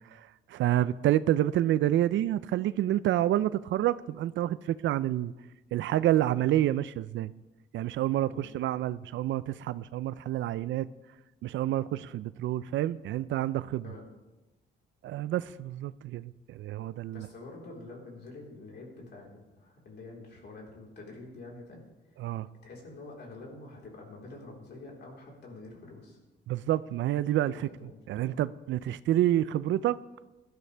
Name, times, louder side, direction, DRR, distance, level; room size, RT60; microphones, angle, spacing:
voice 1, 0.1-5.3 5.7-7.3 7.7-10.9 11.4-13.8 15.0-17.3 22.2-22.5 26.5-27.5 28.1-30.0, right 13 dB, 75° right, 16 dB, 0.4 m, -28 dB
voice 2, 17.1-21.8 22.6-26.2 27.5-28.5, left 2 dB, 60° left, -2 dB, 4.0 m, -47 dB
17.5 x 12.5 x 3.4 m, 1.1 s
cardioid pair, 120°, 20 cm